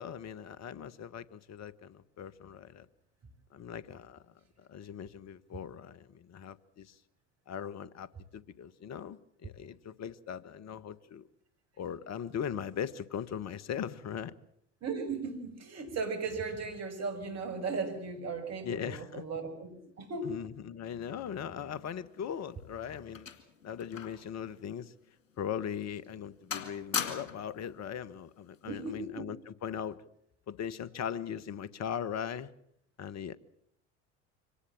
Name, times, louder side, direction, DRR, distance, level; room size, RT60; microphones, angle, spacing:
voice 1, 0.0-2.9 3.5-4.2 4.7-7.0 7.5-11.3 11.8-14.3 18.6-19.2 20.2-23.3 23.6-24.9 25.4-30.0 30.5-32.5 33.0-33.4, left 8 dB, 45° left, 18 dB, 1.4 m, -39 dB
voice 2, 14.8-20.3 28.6-29.3, right 4 dB, 40° right, 6 dB, 5.9 m, -37 dB
sound 1, 22.2-24.3 24.6-24.8 25.4-25.5 26.0-26.3 26.5-27.6 28.5-28.8, left 7 dB, 85° left, 2.3 m, -39 dB
25.0 x 18.5 x 7.4 m, 0.72 s
hypercardioid pair, 70°, 38 cm